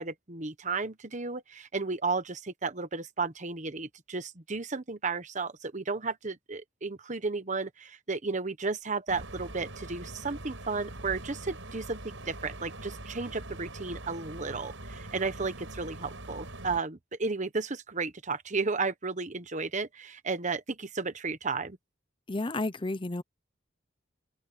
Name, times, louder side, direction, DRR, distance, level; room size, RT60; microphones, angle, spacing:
voice 1, 0.0-21.8, right 4 dB, 40° right, 1.2 m, -33 dB
sound 1, 9.1-16.8, right 2 dB, 90° right, 5.4 m, -43 dB
voice 2, 22.3-23.2, left 2 dB, 25° left, 0.8 m, -31 dB
open air
head